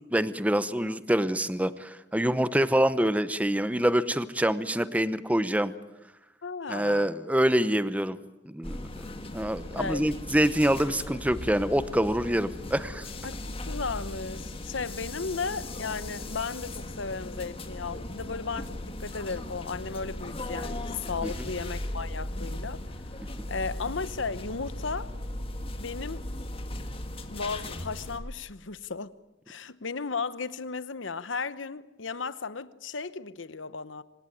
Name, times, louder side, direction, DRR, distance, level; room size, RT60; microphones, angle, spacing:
voice 1, 0.1-5.7 6.7-8.2 8.5-8.9 9.3-13.1 21.2-21.3, right 1 dB, 10° right, 14 dB, 0.8 m, -26 dB
voice 2, 6.4-7.1 9.8-10.0 13.2-23.1 23.5-25.1 25.8-26.2 27.3-29.1 29.5-34.0, left 4 dB, 85° left, 15 dB, 1.0 m, -35 dB
sound 1, 8.6-28.2, left 1 dB, 30° left, 1.9 m, -37 dB
26.0 x 18.0 x 9.0 m, 1.0 s
head